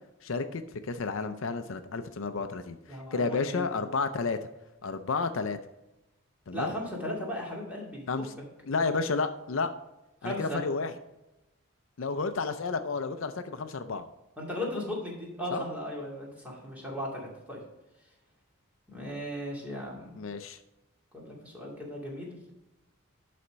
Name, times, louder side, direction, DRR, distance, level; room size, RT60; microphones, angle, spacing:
voice 1, 0.2-4.4 4.8-5.6 6.5-6.8 8.1-8.3 8.7-9.7 10.2-10.9 12.0-14.1 15.5-15.6 20.2-20.6, left 4 dB, 65° left, 9 dB, 0.5 m, -31 dB
voice 2, 2.9-3.7 6.5-8.1 10.2-10.6 14.4-17.6 18.9-20.1 21.1-22.4, equal, 5° right, -4 dB, 2.4 m, -36 dB
11.0 x 4.2 x 5.1 m, 0.94 s
head